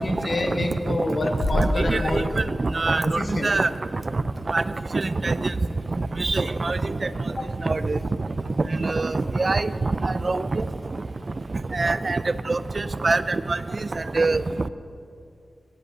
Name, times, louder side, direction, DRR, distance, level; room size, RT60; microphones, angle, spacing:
voice 1, 0.0-2.4 3.0-3.5 7.4-7.5, left 2 dB, 55° left, 4 dB, 1.5 m, -27 dB
sound 1, 1.4-3.5, left 1 dB, 90° left, 4.3 m, -28 dB
voice 2, 1.5-2.2 2.7-3.0 3.4-3.7 4.5-4.6 4.9-5.5 6.2-6.8 7.7-8.0 8.8-9.7 10.0-10.6 11.7-12.2 12.5-12.6 13.0-13.4 14.2-14.4, right 3 dB, 50° right, 14 dB, 0.5 m, -23 dB
18.0 x 8.0 x 6.7 m, 2.6 s
wide cardioid pair, 70°, 0 cm